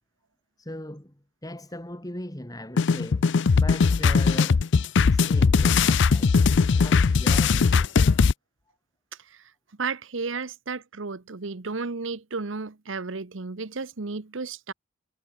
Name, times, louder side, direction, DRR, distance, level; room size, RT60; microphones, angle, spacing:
voice 1, 0.6-4.7 5.1-6.5 6.8-8.0, left 1 dB, 20° left, 2.3 m, -39 dB
sound 1, 2.8-8.3, left 5 dB, 60° left, 0.5 m, -20 dB
voice 2, 9.2-9.5 9.8-14.7, right 4 dB, 70° right, 1.0 m, -33 dB
head